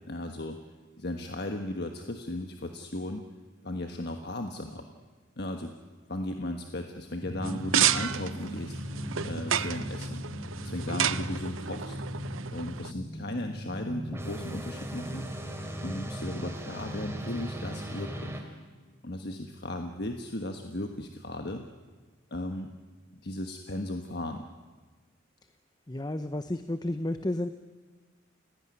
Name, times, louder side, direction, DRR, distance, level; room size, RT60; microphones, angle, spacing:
voice 1, 0.0-0.6 1.0-3.2 3.6-4.9 5.4-5.7 6.1-8.8 9.2-10.2 10.6-12.0 12.5-15.3 15.8-18.4 19.0-21.7 22.3-22.7 23.2-24.4, left 1 dB, 55° left, 4 dB, 1.4 m, -36 dB
sound 1, 7.2-18.4, equal, 15° right, 3.0 m, -38 dB
sound 2, 7.4-12.9, right 9 dB, 85° right, 0.8 m, -31 dB
voice 2, 25.9-27.5, left 1 dB, 20° left, 10 dB, 0.7 m, -31 dB
29.5 x 16.5 x 9.7 m, 1.4 s
head